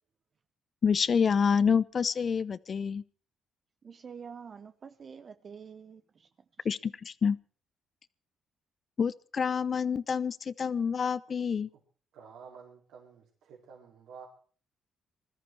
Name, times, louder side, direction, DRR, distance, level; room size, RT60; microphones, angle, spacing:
voice 1, 0.8-3.0 6.6-7.4 9.0-11.7, left 6 dB, 45° left, 0.8 m, -27 dB
voice 2, 3.8-6.3 6.6-6.7, right 6 dB, 45° right, 0.8 m, -47 dB
voice 3, 12.1-14.3, right 6 dB, 85° right, 4.5 m, -51 dB
21.0 x 13.5 x 4.8 m
cardioid pair, 90°, 0 cm